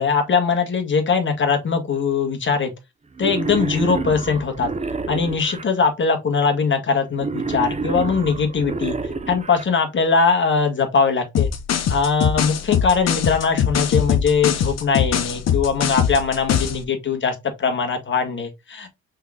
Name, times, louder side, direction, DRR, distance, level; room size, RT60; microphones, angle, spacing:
voice 1, 0.0-2.7 3.2-4.7 5.1-9.0 9.3-11.5 11.9-19.0, left 5 dB, 40° left, 1.9 m, -21 dB
Wild animals, 3.2-5.6 7.2-9.6, right 4 dB, 20° right, 0.9 m, -28 dB
sound 1, 11.3-16.8, left 8 dB, 60° left, 1.0 m, -21 dB
5.6 x 3.8 x 2.4 m
cardioid pair, 90°, 30 cm